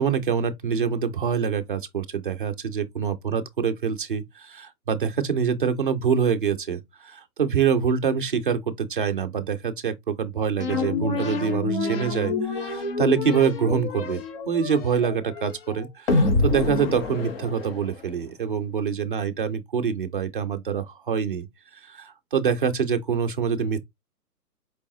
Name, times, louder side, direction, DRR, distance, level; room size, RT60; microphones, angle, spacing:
voice 1, 0.0-21.5 21.7-23.8, right 6 dB, 35° right, 0.4 m, -25 dB
sound 1, 10.6-18.1, left 3 dB, 35° left, 0.8 m, -27 dB
4.7 x 3.4 x 2.6 m
hypercardioid pair, 150°, 48 cm